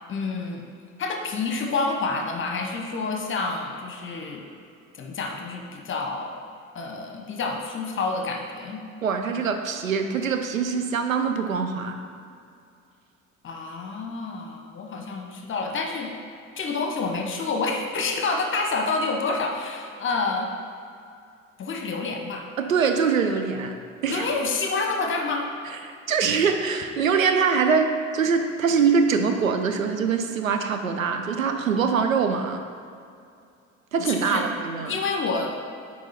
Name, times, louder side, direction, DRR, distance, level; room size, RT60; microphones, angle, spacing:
voice 1, 0.1-0.6 1.0-4.4 5.0-6.4 6.7-8.8 13.4-16.1 16.5-20.5 21.6-22.5 24.1-25.5 34.1-34.4 34.9-35.6, left 3 dB, 30° left, 2 dB, 1.0 m, -28 dB
voice 2, 9.0-12.0 22.6-23.8 24.0-24.3 25.8-32.6 33.9-35.0, right 5 dB, 80° right, 6 dB, 0.6 m, -23 dB
8.9 x 3.0 x 5.6 m, 2.4 s
figure-of-eight pair, 55°, 40 cm